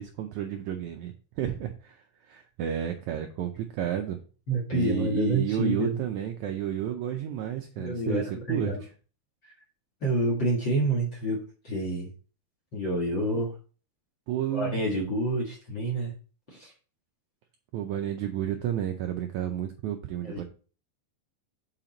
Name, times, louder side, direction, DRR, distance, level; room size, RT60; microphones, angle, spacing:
voice 1, 0.0-4.2 4.7-8.9 14.3-14.8 17.7-20.4, right 10 dB, 90° right, 5 dB, 1.6 m, -31 dB
voice 2, 4.5-6.0 7.8-8.8 9.4-9.5 10.0-11.4 11.6-12.1 12.7-13.5 14.5-16.1 16.5-16.7 20.2-20.4, right 1 dB, 45° left, -1 dB, 1.8 m, -28 dB
7.4 x 5.0 x 3.9 m, 0.38 s
omnidirectional pair, 4.2 m